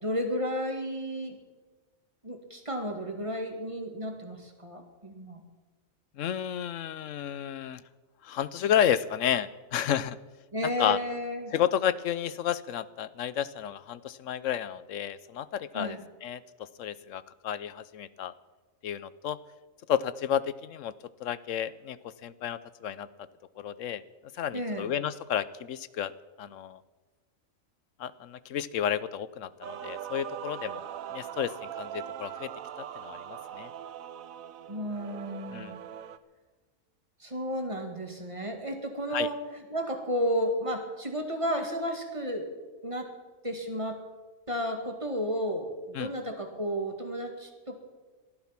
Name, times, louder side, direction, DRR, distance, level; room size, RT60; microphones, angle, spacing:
voice 1, 0.0-1.4 2.2-5.4 10.5-11.5 15.7-16.0 24.5-24.9 34.7-35.7 37.2-42.5 42.8-43.1 43.4-44.0 44.5-47.8, equal, 20° right, 4 dB, 2.2 m, -32 dB
voice 2, 6.2-7.8 8.2-10.2 10.6-11.0 11.5-18.3 18.8-19.4 19.9-20.9 21.2-22.0 22.2-23.1 23.6-24.0 24.3-26.1 26.4-26.8 28.0-30.9 31.1-32.5 32.8-33.7 35.5-35.8 39.1-39.3 45.9-46.1, left 10 dB, 70° left, 17 dB, 1.0 m, -31 dB
Male singing / Female singing / Musical instrument, 29.6-36.2, right 10 dB, 75° right, 1.1 m, -41 dB
19.0 x 13.0 x 5.9 m, 1.3 s
omnidirectional pair, 1.4 m